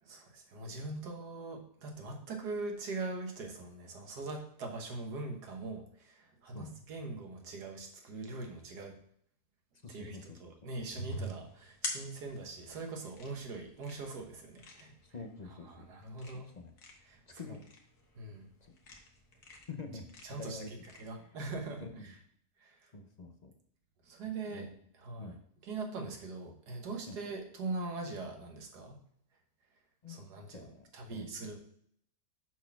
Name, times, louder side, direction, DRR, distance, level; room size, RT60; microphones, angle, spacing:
voice 1, 0.0-9.0 9.9-14.9 15.5-16.5 17.0-17.6 18.2-18.5 20.2-22.2 22.6-22.9 24.0-25.4 25.6-29.0 30.1-31.6, right 3 dB, 85° right, 2 dB, 1.9 m, -42 dB
voice 2, 9.8-10.7 15.0-15.8 16.3-16.7 17.3-17.6 18.6-18.7 19.7-20.1 20.4-20.7 21.2-21.3 21.8-22.1 22.9-23.5 24.5-24.7 25.2-25.4 27.1-27.2 30.0-30.2 30.5-31.3, left 3 dB, 40° left, 5 dB, 0.6 m, -47 dB
sound 1, 10.7-21.0, left 1 dB, 75° left, 1.9 m, -46 dB
7.0 x 4.2 x 5.8 m, 0.65 s
omnidirectional pair, 1.7 m